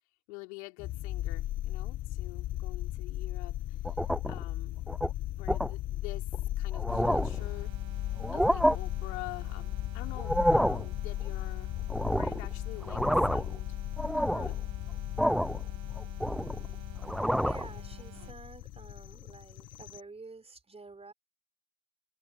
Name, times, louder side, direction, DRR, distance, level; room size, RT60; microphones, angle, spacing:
voice 1, 0.3-4.0 4.3-4.9 5.3-7.7 8.3-11.7 12.2-13.8 14.1-14.6 18.2-18.4, left 26 dB, 70° left, 4.0 m, -47 dB
Deep Bass Drone, 0.8-20.0, left 14 dB, 45° left, 1.3 m, -37 dB
sound 1, 3.9-4.4 4.9-5.1 5.5-5.7 6.3-6.4 6.7-7.4 8.2-8.8 10.2-10.9 11.9-12.5 12.8-13.6 14.0-14.6 15.2-15.6 16.0-16.7 17.0-17.7, equal, ahead, 0.4 m, -28 dB
sound 2, 6.9-18.3, right 15 dB, 50° right, 2.7 m, -52 dB
voice 2, 17.3-21.1, right 3 dB, 15° right, 4.4 m, -50 dB
hypercardioid pair, 80°, 35 cm